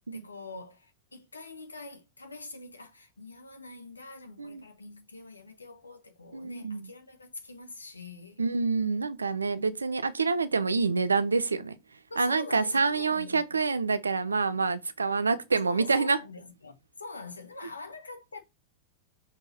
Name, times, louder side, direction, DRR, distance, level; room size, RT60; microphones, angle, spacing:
voice 1, 0.1-8.4 12.1-13.6 15.6-18.4, left 3 dB, 80° left, 1.4 m, -44 dB
voice 2, 6.3-6.9 8.4-11.8 12.2-16.2, right 4 dB, 75° right, 0.7 m, -27 dB
6.6 x 3.6 x 4.2 m
figure-of-eight pair, 90°, 0 cm